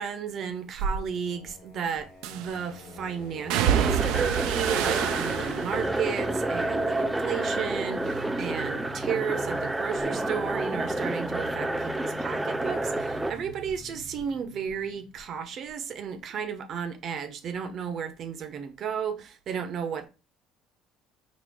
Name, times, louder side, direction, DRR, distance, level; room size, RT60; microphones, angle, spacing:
voice 1, 0.0-20.1, right 7 dB, 55° right, 0.8 m, -33 dB
sound 1, 0.7-1.0 2.2-2.7 3.5-7.7 8.0-8.7 9.0-12.3 12.6-13.7 14.0-14.2, right 10 dB, 80° right, 0.4 m, -31 dB
Singing, 1.0-15.7, left 2 dB, 60° left, 1.3 m, -43 dB
sound 2, 3.7-13.3, right 2 dB, 10° right, 0.4 m, -29 dB
4.3 x 2.8 x 3.4 m
supercardioid pair, 75°, 0 cm